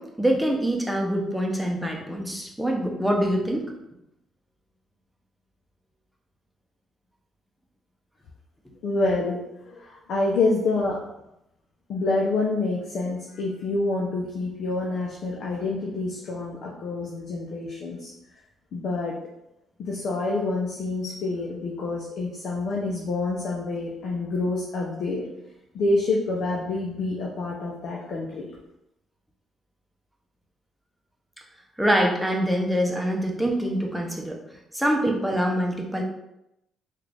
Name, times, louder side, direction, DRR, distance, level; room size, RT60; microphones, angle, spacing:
voice 1, 0.0-3.7 31.8-34.4 34.7-36.0, equal, ahead, 0 dB, 0.7 m, -25 dB
voice 2, 8.8-9.4 9.6-11.0 11.9-18.1 18.7-19.1 19.8-25.2 25.7-28.5, left 2 dB, 70° left, -3 dB, 0.6 m, -27 dB
3.7 x 2.4 x 3.3 m, 0.86 s
cardioid pair, 90°, 0 cm